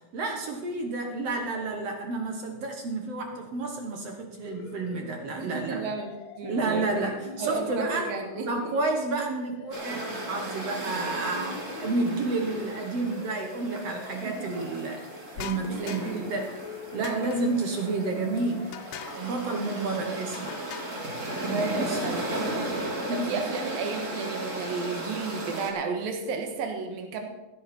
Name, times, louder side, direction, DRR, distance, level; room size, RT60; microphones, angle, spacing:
voice 1, 0.1-5.8 6.4-8.1 8.5-15.0 15.3-16.5 16.9-18.7 19.1-20.5 20.8-21.1 21.4-22.0 23.1-23.4, right 3 dB, 60° right, 3 dB, 1.9 m, -30 dB
sound 1, 4.4-20.8, left 6 dB, 65° left, 2.2 m, -45 dB
voice 2, 5.4-6.9 7.4-8.8 10.7-10.8 14.2-14.5 15.7-16.3 17.0-17.3 20.0-20.2 21.6-27.3, right 5 dB, 90° right, 4 dB, 3.2 m, -34 dB
sound 2, 9.7-25.7, right 1 dB, 25° right, 1.9 m, -36 dB
sound 3, 15.4-16.3 17.0-17.7 18.7-19.3 20.3-21.1, left 9 dB, 85° left, 2.6 m, -41 dB
15.5 x 10.5 x 4.4 m, 1.1 s
omnidirectional pair, 4.0 m